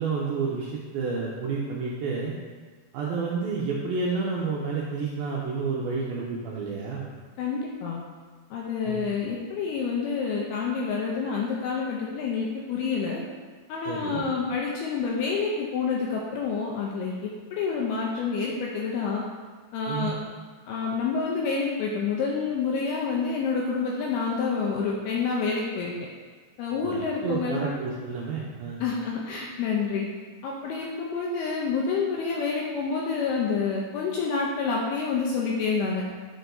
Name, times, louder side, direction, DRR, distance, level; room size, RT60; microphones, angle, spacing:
voice 1, 0.0-2.3 2.9-7.1 8.9-9.1 13.9-14.2 19.9-20.1 26.8-28.8, right 4 dB, 90° right, -4 dB, 2.1 m, -30 dB
voice 2, 7.4-8.0 8.5-13.2 13.7-19.2 19.7-20.2 20.7-25.9 26.6-27.8 28.8-30.1 30.4-36.0, left 5 dB, 85° left, -2 dB, 2.3 m, -28 dB
9.2 x 4.6 x 2.6 m, 1.5 s
omnidirectional pair, 5.0 m